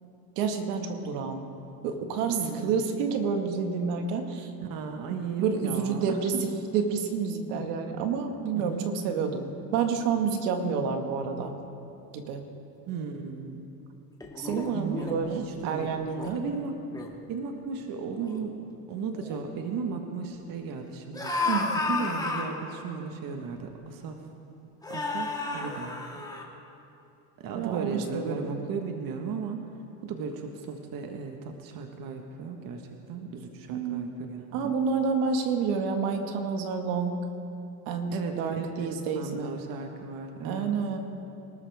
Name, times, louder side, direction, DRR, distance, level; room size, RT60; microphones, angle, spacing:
voice 1, 0.4-1.4 1.8-4.5 5.1-6.5 6.7-11.6 12.1-12.4 14.4-16.4 21.5-21.7 27.5-28.6 33.7-34.1 34.5-37.2 37.9-39.5 40.4-41.0, right 5 dB, 75° right, 5 dB, 1.9 m, -29 dB
voice 2, 2.3-2.8 4.6-6.2 8.5-9.3 12.8-13.7 14.7-16.0 16.3-16.8 17.3-18.6 18.9-21.4 21.7-24.2 24.9-26.0 27.4-29.6 30.0-34.7 38.1-40.7, right 5 dB, 50° right, 4 dB, 1.4 m, -36 dB
sound 1, 14.2-15.2 16.0-16.3 16.7-17.1 17.8-17.9 18.2-18.5 19.1-19.4 21.1-22.6 23.6-23.7 24.8-26.4, left 3 dB, 10° left, 1.8 m, -32 dB
24.5 x 13.0 x 3.5 m, 2.7 s
supercardioid pair, 115°, 45 cm